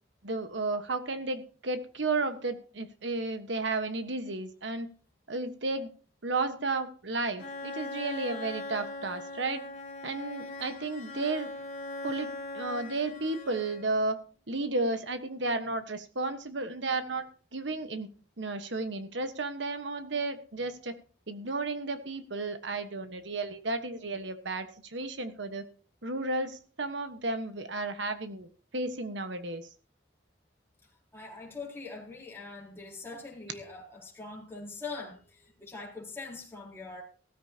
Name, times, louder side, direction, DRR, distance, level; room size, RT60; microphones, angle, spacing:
voice 1, 0.2-4.9 5.3-5.9 6.2-9.7 10.0-11.5 12.0-14.2 14.5-18.1 18.4-20.9 21.3-25.7 26.0-29.7, right 3 dB, 70° right, 9 dB, 1.3 m, -33 dB
Bowed string instrument, 7.4-14.1, left 2 dB, 45° left, 3.5 m, -40 dB
voice 2, 31.1-37.0, left 3 dB, 15° left, -3 dB, 4.0 m, -43 dB
16.0 x 13.5 x 2.9 m, 0.41 s
head